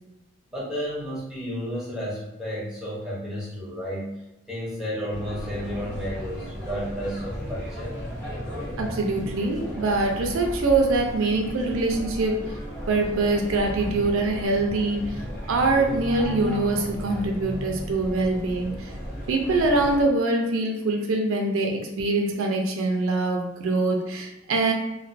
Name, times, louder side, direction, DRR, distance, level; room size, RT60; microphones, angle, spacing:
voice 1, 0.5-4.1 4.5-8.0, equal, 5° right, -9 dB, 0.7 m, -32 dB
sound 1, 5.1-20.0, equal, 45° left, 1.1 m, -35 dB
voice 2, 8.8-12.6 12.9-15.2 15.5-18.9 19.3-24.7, right 2 dB, 90° right, 2 dB, 0.4 m, -24 dB
2.3 x 2.2 x 2.5 m, 0.93 s
head